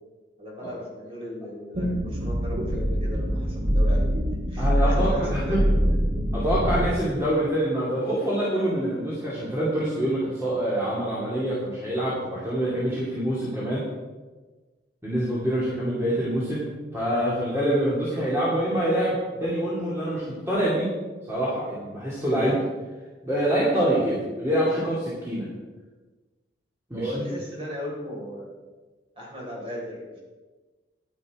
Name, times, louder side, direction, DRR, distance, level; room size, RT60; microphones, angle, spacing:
voice 1, 0.4-4.1 4.3-5.9 26.9-28.5 29.2-30.2, left 1 dB, 30° right, -3 dB, 4.2 m, -36 dB
sound 1, 1.7-6.9, equal, 60° right, 1.3 m, -24 dB
voice 2, 4.6-5.9 6.3-13.8 15.0-16.7 16.9-20.9 21.3-22.6 23.2-25.5 26.9-27.3, right 1 dB, 15° right, -8 dB, 2.6 m, -25 dB
11.5 x 10.0 x 4.9 m, 1.3 s
head